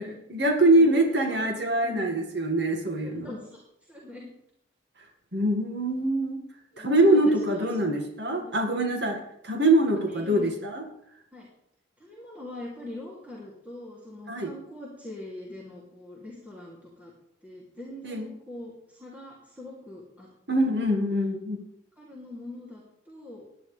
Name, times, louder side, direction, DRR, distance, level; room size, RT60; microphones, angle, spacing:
voice 1, 0.0-3.3 5.3-6.4 6.8-10.8 14.3-14.5 18.0-18.3 20.5-21.6, right 1 dB, 65° right, 2 dB, 2.0 m, -24 dB
voice 2, 1.8-2.3 3.0-3.6 3.9-4.3 6.7-7.7 8.3-8.5 10.1-10.5 11.3-11.5 12.0-17.1 17.4-20.3 20.6-20.8 22.0-23.4, left 1 dB, 10° right, -6 dB, 2.8 m, -42 dB
17.5 x 11.0 x 3.4 m, 0.75 s
head